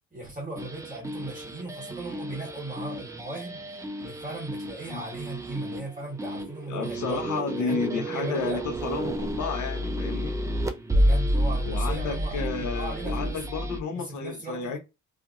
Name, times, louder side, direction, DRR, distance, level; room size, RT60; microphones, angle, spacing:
voice 1, 0.1-3.6 4.0-7.3 7.6-8.6 10.7-12.5 12.7-13.4 13.9-14.8, right 2 dB, 25° right, 1.4 m, -37 dB
sound 1, 0.6-13.8, equal, 10° right, 0.4 m, -30 dB
voice 2, 6.7-10.4 11.7-14.8, left 5 dB, 75° left, 0.9 m, -32 dB
2.8 x 2.6 x 2.5 m
cardioid pair, 90°, 30 cm